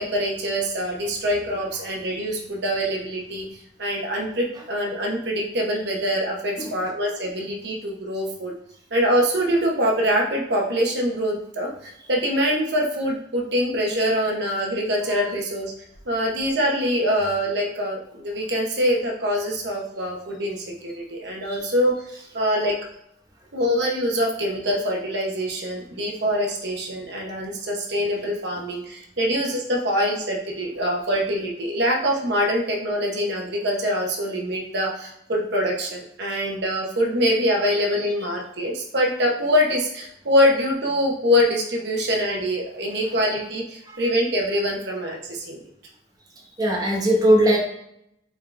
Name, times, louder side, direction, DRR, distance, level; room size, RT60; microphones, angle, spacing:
voice 1, 0.0-3.4 3.8-8.5 8.9-15.7 16.1-22.0 22.3-22.7 23.5-45.6, equal, 65° right, 0 dB, 0.9 m, -24 dB
voice 2, 46.5-47.6, right 1 dB, 20° right, -2 dB, 1.0 m, -20 dB
5.2 x 3.6 x 2.5 m, 0.76 s
head